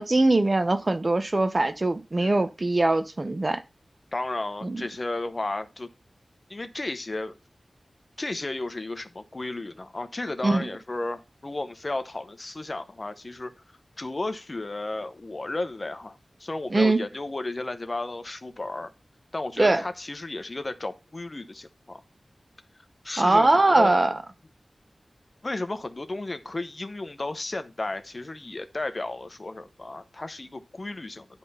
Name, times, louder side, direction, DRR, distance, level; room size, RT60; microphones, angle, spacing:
voice 1, 0.0-3.6 4.6-4.8 10.4-10.7 16.7-17.0 19.6-19.8 23.2-24.2, right 2 dB, 40° right, 0.8 m, -22 dB
voice 2, 4.1-5.9 6.5-7.3 8.2-13.5 14.0-18.9 19.3-22.0 23.0-24.0 25.4-31.3, left 2 dB, 40° left, 0.9 m, -33 dB
10.5 x 3.6 x 5.5 m
wide cardioid pair, 85°, 0 cm